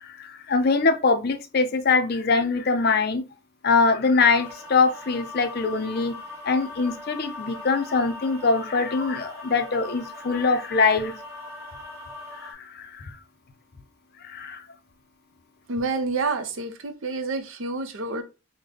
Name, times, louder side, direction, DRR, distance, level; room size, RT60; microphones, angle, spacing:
voice 1, 0.0-3.2 3.6-6.1 6.4-11.1 12.4-13.2 14.2-14.6, left 4 dB, 50° left, 0.4 m, -23 dB
sound 1, 4.2-12.5, left 2 dB, 15° right, 0.9 m, -40 dB
voice 2, 15.7-18.2, right 3 dB, 70° right, 0.6 m, -28 dB
3.7 x 2.1 x 3.3 m
head